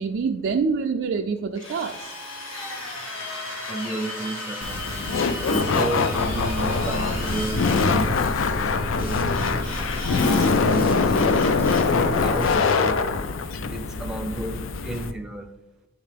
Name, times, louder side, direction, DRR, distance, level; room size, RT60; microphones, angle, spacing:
voice 1, 0.0-2.1, right 5 dB, 65° right, 3 dB, 0.3 m, -26 dB
Drill, 1.5-7.9 9.3-10.5 10.9-11.9, left 2 dB, 90° left, 1.4 m, -34 dB
voice 2, 3.7-9.6 10.2-11.5 11.8-13.0 13.7-15.5, right 2 dB, 5° right, 4 dB, 0.5 m, -33 dB
Laughter, 4.6-15.1, left 4 dB, 70° left, 0.4 m, -23 dB
sound 1, 6.1-12.5, left 1 dB, 45° left, 0.9 m, -34 dB
8.5 x 3.6 x 3.3 m, 0.96 s
head